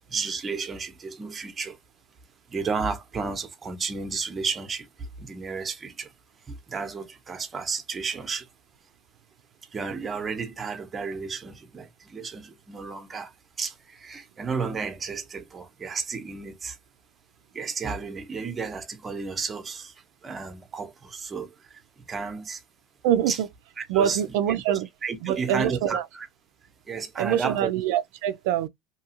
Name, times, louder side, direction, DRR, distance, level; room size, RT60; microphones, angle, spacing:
voice 1, 0.1-1.8 2.5-6.1 6.5-8.5 9.7-13.3 13.6-16.8 17.5-19.9 20.2-21.8 22.1-22.6 23.3-23.4 23.8-24.2 25.0-26.3 26.9-27.7, right 5 dB, 25° right, 0.8 m, -32 dB
voice 2, 23.0-23.5 23.9-24.9 25.2-26.0 27.2-28.7, right 10 dB, 80° right, 0.3 m, -24 dB
2.8 x 2.3 x 2.9 m
supercardioid pair, 120°, 0 cm